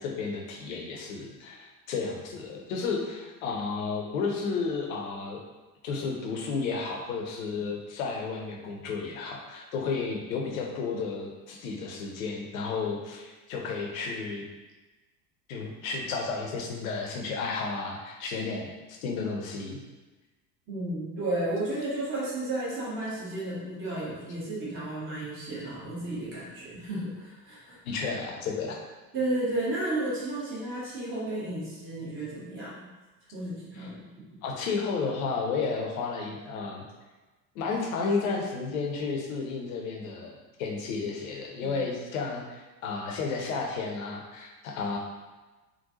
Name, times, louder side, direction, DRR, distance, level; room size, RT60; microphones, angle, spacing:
voice 1, 0.0-5.4 5.8-14.4 15.5-18.7 19.0-19.8 27.8-28.8 33.7-33.9 34.4-36.8 37.5-40.3 40.6-45.0, left 4 dB, 55° left, 0 dB, 0.7 m, -32 dB
voice 2, 20.7-27.8 29.1-32.7 33.3-34.0 41.6-41.7, right 1 dB, 25° right, -8 dB, 1.3 m, -33 dB
3.7 x 2.3 x 2.7 m, 1.2 s
figure-of-eight pair, 70°, 48 cm